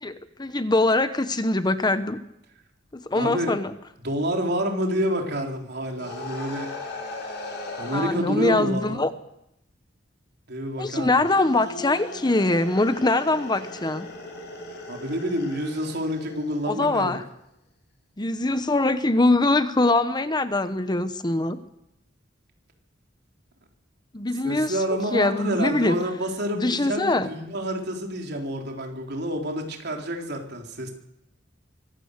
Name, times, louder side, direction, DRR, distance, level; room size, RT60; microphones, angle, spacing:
voice 1, 0.0-2.2 2.9-3.7 7.9-9.1 10.8-14.1 16.7-17.2 18.2-21.6 24.1-24.8 25.1-26.0 26.5-27.3, left 2 dB, 20° left, 11 dB, 1.0 m, -23 dB
voice 2, 3.1-3.6 4.0-6.7 7.8-9.1 10.5-11.1 14.9-17.2 24.4-30.9, equal, 60° right, 2 dB, 3.9 m, -28 dB
sound 1, 6.0-8.2 11.2-16.8, left 2 dB, 60° left, 5.9 m, -38 dB
24.0 x 16.5 x 6.7 m, 0.83 s
head